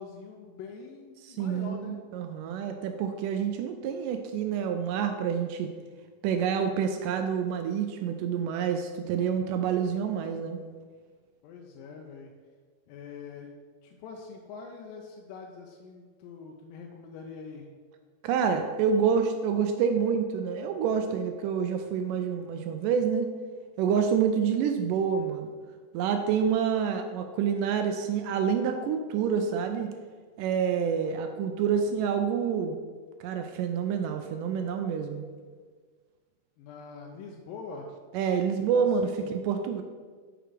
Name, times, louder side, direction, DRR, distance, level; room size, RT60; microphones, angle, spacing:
voice 1, 0.0-1.9 11.4-12.3 12.9-13.5 13.8-17.7 36.6-37.9 38.6-39.3, left 5 dB, 80° left, 1 dB, 2.2 m, -44 dB
voice 2, 1.2-5.7 6.2-10.6 18.2-23.3 23.8-25.5 25.9-29.9 30.4-32.8 33.2-35.2 38.1-39.1 39.4-39.8, right 7 dB, 85° right, 6 dB, 1.9 m, -27 dB
7.6 x 4.8 x 5.0 m, 1.5 s
omnidirectional pair, 4.3 m